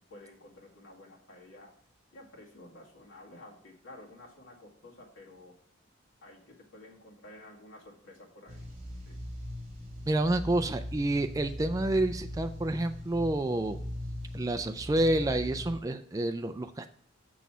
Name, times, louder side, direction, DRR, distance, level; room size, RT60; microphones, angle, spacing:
voice 1, 0.1-1.7 2.1-5.6 6.2-8.7 9.1-9.2, left 1 dB, 85° left, -1 dB, 2.1 m, -52 dB
energy holosphere loop, 8.5-15.7, left 1 dB, 35° right, 3.0 m, -40 dB
voice 2, 10.1-13.8 14.3-17.0, right 1 dB, 15° right, 8 dB, 0.3 m, -29 dB
6.8 x 6.2 x 6.0 m, 0.64 s
head